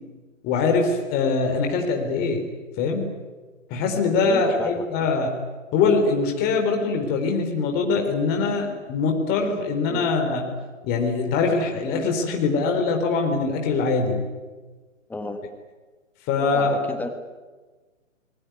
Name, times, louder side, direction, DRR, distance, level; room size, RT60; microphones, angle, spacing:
voice 1, 0.4-2.4 2.8-3.0 3.7-5.3 5.7-10.4 10.8-14.2 16.3-16.8, left 4 dB, 25° left, 3 dB, 4.0 m, -23 dB
voice 2, 4.2-5.1 9.9-10.1 15.1-15.4 16.4-17.1, left 2 dB, 5° left, 8 dB, 1.6 m, -32 dB
27.0 x 22.0 x 9.4 m, 1.3 s
figure-of-eight pair, 130°, 39 cm